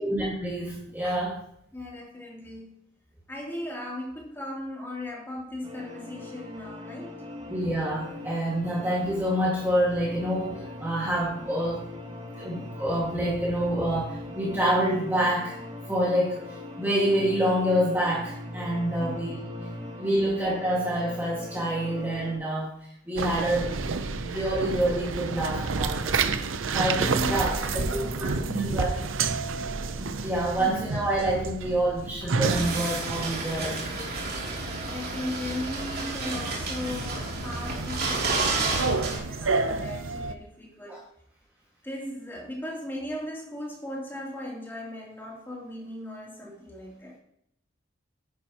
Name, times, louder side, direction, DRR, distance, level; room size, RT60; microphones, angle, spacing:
voice 1, 0.0-1.4 7.5-11.8 12.4-15.6 15.9-19.4 20.0-22.7 23.1-26.2 26.7-29.0 29.9-34.1 40.9-41.0, right 1 dB, 10° right, -6 dB, 2.0 m, -27 dB
voice 2, 1.7-2.7 3.3-7.2 19.0-19.3 27.0-28.6 30.5-30.8 34.9-41.0 41.8-47.2, left 1 dB, 10° left, -4 dB, 3.3 m, -37 dB
sound 1, 5.6-22.4, left 1 dB, 30° right, 2.7 m, -40 dB
sound 2, 23.2-40.3, right 4 dB, 70° right, 0.7 m, -30 dB
sound 3, 32.4-39.2, right 3 dB, 50° right, 3.2 m, -31 dB
11.0 x 10.5 x 3.1 m, 0.72 s
head